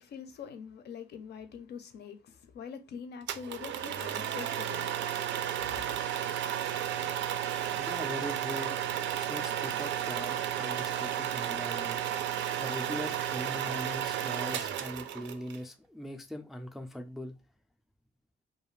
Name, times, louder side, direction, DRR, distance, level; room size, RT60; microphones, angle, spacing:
voice 1, 0.0-5.0 5.7-5.8, left 7 dB, 65° left, 0.5 m, -44 dB
sound 1, 3.3-15.6, right 10 dB, 75° right, 0.4 m, -33 dB
voice 2, 7.7-8.8 9.2-12.0 12.6-17.4, left 1 dB, ahead, 0.3 m, -41 dB
2.4 x 2.3 x 3.1 m
cardioid pair, 145°, 19 cm